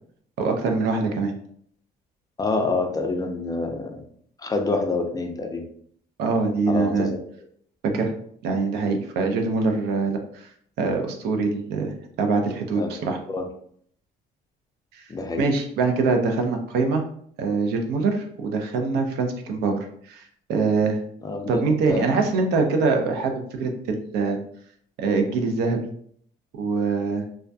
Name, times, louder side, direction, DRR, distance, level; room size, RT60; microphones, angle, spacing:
voice 1, 0.4-1.3 6.2-7.1 7.8-8.1 8.4-10.5 10.8-13.2 14.9-15.1 15.4-17.0 17.4-19.8 20.0-21.0 21.5-24.4 25.0-25.8 26.5-27.2, right 4 dB, 75° right, 4 dB, 0.5 m, -24 dB
voice 2, 2.4-4.0 4.4-5.7 6.7-7.2 12.7-12.9 13.3-13.5 15.1-15.4 21.2-22.2, left 3 dB, 20° left, 4 dB, 0.4 m, -27 dB
2.3 x 2.1 x 2.6 m, 0.63 s
cardioid pair, 110°, 17 cm